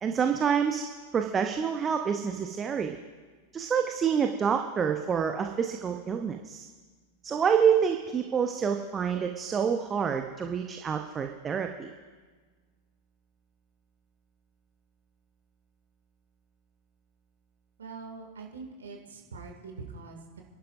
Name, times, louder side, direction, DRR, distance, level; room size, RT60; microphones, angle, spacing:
voice 1, 0.0-0.8 1.1-3.0 3.5-6.7 7.2-11.9, right 7 dB, 20° right, 5 dB, 0.8 m, -27 dB
voice 2, 17.8-20.4, right 4 dB, 70° right, 1 dB, 2.4 m, -43 dB
30.0 x 11.5 x 2.6 m, 1.4 s
figure-of-eight pair, 90°, 0 cm